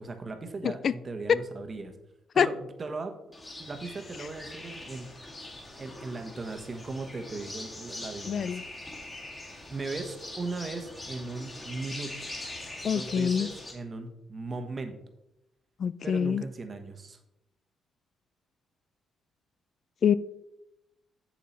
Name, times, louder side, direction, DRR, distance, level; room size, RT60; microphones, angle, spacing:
voice 1, 0.0-1.9 2.3-3.2 3.6-5.1 5.8-8.7 9.7-12.3 12.8-15.0 16.0-17.2, right 3 dB, 35° right, 6 dB, 1.2 m, -38 dB
sound 1, 3.3-13.7, left 2 dB, 20° left, 2.2 m, -42 dB
voice 2, 8.3-8.6 12.8-13.5 15.8-16.4 20.0-20.1, left 7 dB, 55° left, 17 dB, 0.3 m, -25 dB
7.4 x 7.1 x 4.4 m, 0.89 s
cardioid pair, 90°, 0 cm